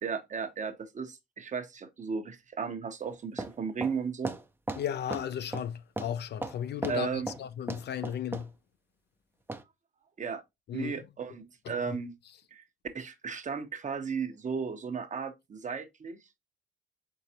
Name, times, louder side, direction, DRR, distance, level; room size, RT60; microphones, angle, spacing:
voice 1, 0.0-4.3 6.9-7.3 10.2-10.4 10.7-12.1 12.5-12.6 12.9-16.2, right 5 dB, 40° right, 0.8 m, -35 dB
sound 1, 3.1-3.2 3.4-3.6 3.8-4.0 4.3-5.3 5.5-5.7 6.0-6.1 6.4-7.0 7.3-7.4 7.7-8.5 9.5-9.6, right 2 dB, 10° right, 0.5 m, -36 dB
voice 2, 4.8-8.5 10.7-11.0 11.7-12.0, left 9 dB, 60° left, 0.4 m, -35 dB
4.7 x 3.9 x 2.7 m
cardioid pair, 90°, 20 cm